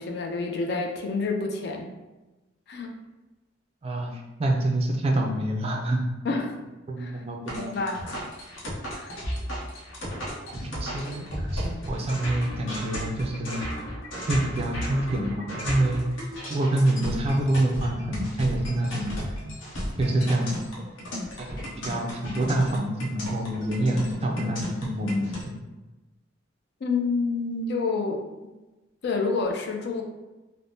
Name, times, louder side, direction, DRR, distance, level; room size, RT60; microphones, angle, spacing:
voice 1, 0.0-1.9 2.7-2.9 6.2-6.6 7.0-7.1 7.7-8.2 9.0-9.2 26.8-28.2 29.0-30.0, left 4 dB, 55° left, 3 dB, 0.4 m, -28 dB
voice 2, 3.8-6.0 6.3-6.4 6.9-7.7 10.7-11.3 11.5-13.7 14.3-19.1 20.0-20.6 21.4-25.6, right 1 dB, 30° right, 1 dB, 0.3 m, -26 dB
sound 1, 7.5-25.4, equal, 85° left, 0.8 m, -34 dB
3.4 x 2.0 x 2.6 m, 1.1 s
head